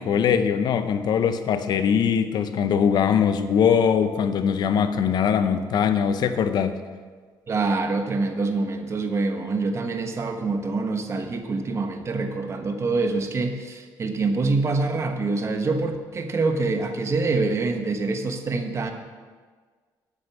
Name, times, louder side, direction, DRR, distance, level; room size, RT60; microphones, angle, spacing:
voice 1, 0.0-6.7, left 7 dB, 60° left, 10 dB, 0.8 m, -21 dB
voice 2, 7.5-18.9, right 3 dB, 35° right, 5 dB, 1.2 m, -25 dB
9.5 x 6.5 x 7.2 m, 1.5 s
cardioid pair, 105°, 8 cm